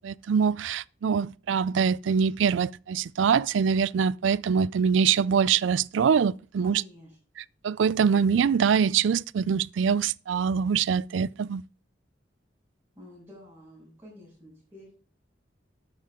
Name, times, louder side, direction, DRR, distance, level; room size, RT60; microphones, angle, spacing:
voice 1, 0.0-6.8 7.6-11.6, right 6 dB, 85° right, 0.4 m, -24 dB
voice 2, 6.6-7.2 12.9-14.9, left 1 dB, 15° right, 6.7 m, -49 dB
12.0 x 8.7 x 3.6 m
head